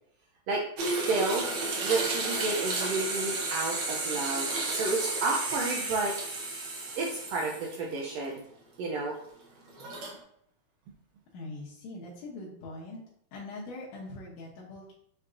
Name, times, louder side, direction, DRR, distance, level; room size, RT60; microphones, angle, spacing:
sound 1, 0.8-8.0 8.4-8.5 9.7-10.1, right 3 dB, 65° right, 1.3 m, -32 dB
voice 1, 1.1-1.4 1.8-6.1 7.0-8.4 8.8-9.1, right 3 dB, 85° right, -1 dB, 1.4 m, -31 dB
voice 2, 11.3-13.0 13.3-14.9, left 2 dB, 70° left, -6 dB, 2.0 m, -42 dB
6.5 x 2.8 x 2.5 m, 0.70 s
omnidirectional pair, 3.5 m